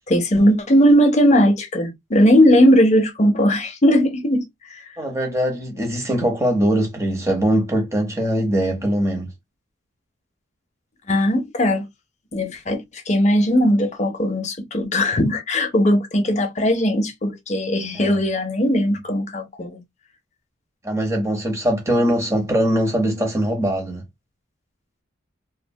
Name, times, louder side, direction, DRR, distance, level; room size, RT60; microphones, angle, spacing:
voice 1, 0.1-4.8 11.1-11.8 12.3-19.8 23.1-23.2, equal, 35° left, 0.5 m, -18 dB
voice 2, 5.0-9.3 17.9-18.2 20.8-24.0, right 1 dB, 15° right, 0.8 m, -21 dB
2.6 x 2.1 x 2.6 m
head